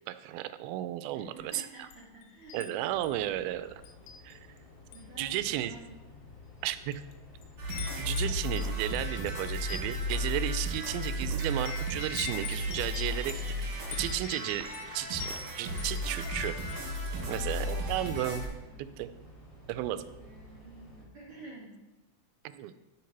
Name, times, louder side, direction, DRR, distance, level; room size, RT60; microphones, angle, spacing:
voice 1, 0.1-1.9 2.5-3.7 4.2-4.4 5.2-5.8 6.6-7.0 8.0-13.4 14.0-16.6 17.3-18.5 18.8-19.1 19.7-20.0 22.4-22.7, right 13 dB, 85° right, 12 dB, 2.4 m, -34 dB
voice 2, 1.1-2.9 4.9-6.0 17.1-18.9 20.2-21.8, right 2 dB, 40° right, -8 dB, 2.5 m, -50 dB
Wind chime, 1.4-2.7 3.0-3.3 3.8-4.6 4.9-5.2 5.9-6.0 6.7-7.1 7.4-16.9, left 8 dB, 75° left, 1.9 m, -44 dB
sound 1, 2.8-21.0, left 2 dB, 30° left, 1.6 m, -53 dB
sound 2, 7.6-18.5, equal, 60° right, 4.1 m, -34 dB
12.5 x 4.7 x 5.9 m, 1.1 s
omnidirectional pair, 4.3 m